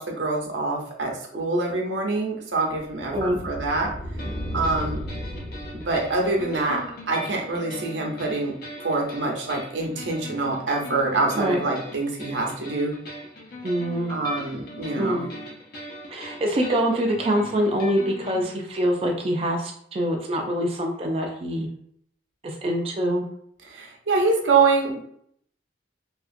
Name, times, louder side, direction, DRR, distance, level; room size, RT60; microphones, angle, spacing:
voice 1, 0.0-3.9 4.5-5.0 5.9-12.9 14.1-15.2 23.7-25.0, right 3 dB, 90° right, 0 dB, 0.7 m, -25 dB
sound 1, 1.3-6.9, equal, 35° left, 1.2 m, -36 dB
voice 2, 1.3-1.6 3.1-3.4 11.3-11.6 13.6-14.2 15.0-15.3 16.1-21.7 22.4-23.3, equal, 35° right, 0 dB, 0.4 m, -25 dB
sound 2, 4.2-18.4, left 1 dB, 55° left, 0.8 m, -40 dB
2.8 x 2.4 x 2.5 m, 0.66 s
head